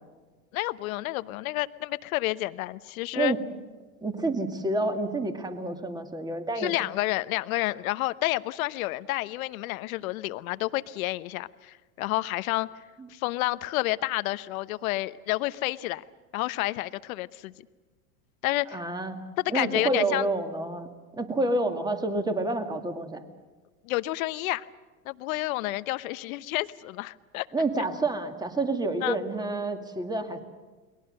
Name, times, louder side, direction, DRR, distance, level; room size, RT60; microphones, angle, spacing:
voice 1, 0.5-3.3 6.6-12.7 13.1-16.0 16.3-17.5 18.4-18.8 19.4-20.3 23.8-24.7 25.0-27.5 29.0-29.2, left 18 dB, 75° left, 14 dB, 1.0 m, -30 dB
voice 2, 4.0-6.8 13.0-13.1 18.7-19.2 19.5-20.9 21.2-23.2 27.5-30.4, right 2 dB, 10° right, 6 dB, 2.2 m, -28 dB
30.0 x 21.5 x 6.6 m, 1.3 s
supercardioid pair, 125°, 42 cm